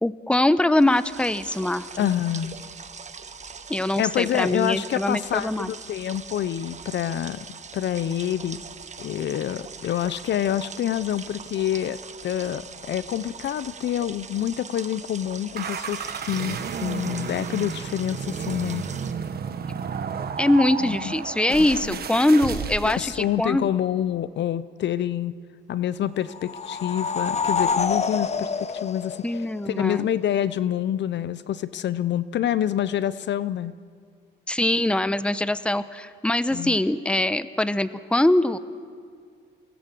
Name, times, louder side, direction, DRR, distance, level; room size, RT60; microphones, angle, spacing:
voice 1, 0.0-2.1 3.7-5.7 20.4-23.7 29.2-30.1 34.5-38.6, left 1 dB, 5° left, 14 dB, 0.9 m, -23 dB
sound 1, 0.8-19.1, right 5 dB, 35° right, 1.4 m, -41 dB
voice 2, 2.0-2.5 4.0-7.5 7.7-8.6 9.0-18.9 20.8-21.1 21.5-22.0 22.8-25.4 25.7-33.7 36.5-36.8, left 11 dB, 65° left, 16 dB, 0.7 m, -27 dB
sound 2, 15.5-23.1, right 6 dB, 50° right, 1.6 m, -32 dB
sound 3, 26.3-29.8, left 5 dB, 35° left, 1.0 m, -27 dB
27.5 x 18.5 x 7.7 m, 2.1 s
cardioid pair, 90°, 20 cm